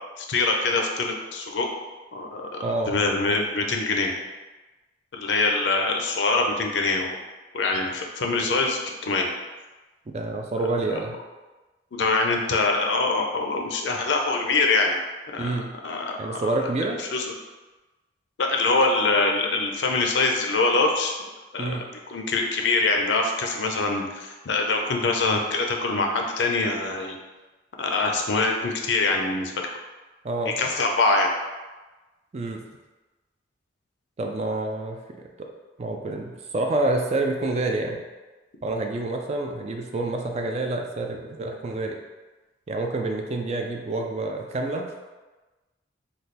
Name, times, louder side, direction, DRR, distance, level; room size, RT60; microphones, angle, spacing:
voice 1, 0.2-1.7 2.1-4.1 5.1-7.2 7.5-9.3 11.9-14.9 15.3-16.5 17.1-17.2 18.4-21.1 21.5-27.1 27.8-29.5 30.6-31.3, left 3 dB, 70° left, 2 dB, 0.5 m, -24 dB
voice 2, 2.6-2.9 10.1-11.2 15.4-15.7 16.2-17.0 21.6-21.9 30.2-30.6 32.3-32.6 34.2-35.5 35.8-38.0 38.6-41.9 42.7-44.9, right 2 dB, 35° right, 2 dB, 0.4 m, -28 dB
3.2 x 2.2 x 4.0 m, 1.2 s
head